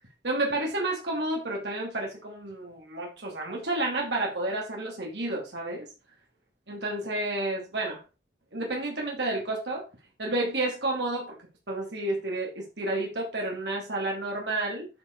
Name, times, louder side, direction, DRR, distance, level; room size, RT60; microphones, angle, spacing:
voice 1, 0.2-5.9 6.7-8.0 8.5-9.8 10.2-11.4 11.7-14.9, right 2 dB, 80° right, -1 dB, 2.7 m, -30 dB
9.4 x 4.9 x 4.7 m, 0.29 s
head